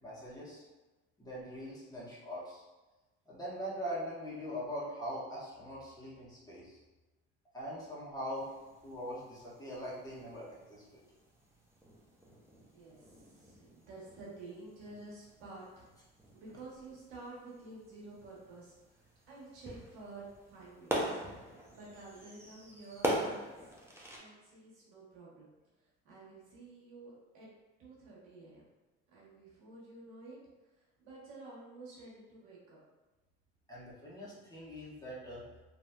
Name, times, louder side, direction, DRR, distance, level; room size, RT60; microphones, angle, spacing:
voice 1, 0.0-0.6 1.2-2.6 3.3-6.8 7.5-8.5 8.8-11.0 33.7-35.4, equal, 10° left, -8 dB, 1.2 m, -42 dB
sound 1, 8.3-24.2, right 1 dB, 10° right, 0.6 m, -43 dB
voice 2, 12.5-15.9 16.3-21.2 21.7-23.8 24.2-25.5 26.0-27.5 27.8-28.6 29.1-30.4 31.0-32.8, right 2 dB, 85° right, -6 dB, 1.1 m, -51 dB
3.0 x 2.6 x 2.2 m, 1.2 s
supercardioid pair, 80°, 31 cm